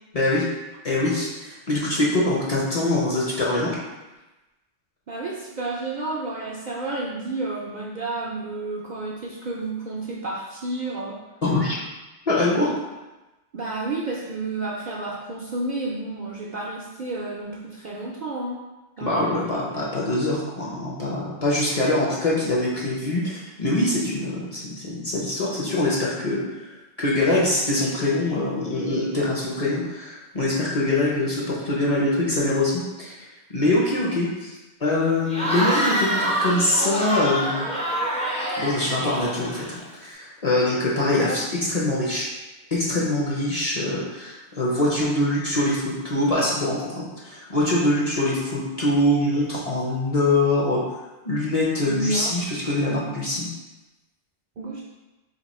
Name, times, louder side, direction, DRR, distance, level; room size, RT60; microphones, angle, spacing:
voice 1, 0.1-0.5 0.8-3.7 11.4-11.8 12.3-12.7 19.0-26.7 27.0-33.1 33.5-37.7 38.6-42.3 42.7-46.9 47.2-50.8 51.2-53.5, left 1 dB, 40° left, -5 dB, 0.7 m, -23 dB
voice 2, 5.1-11.2 13.5-18.6 19.0-19.6 41.1-41.4 51.8-52.3 54.6-54.8, right 2 dB, 55° right, -5 dB, 0.5 m, -31 dB
Cheering / Crowd, 35.3-39.9, equal, 10° left, 0.4 m, -26 dB
2.9 x 2.7 x 4.1 m, 1.1 s
omnidirectional pair, 1.1 m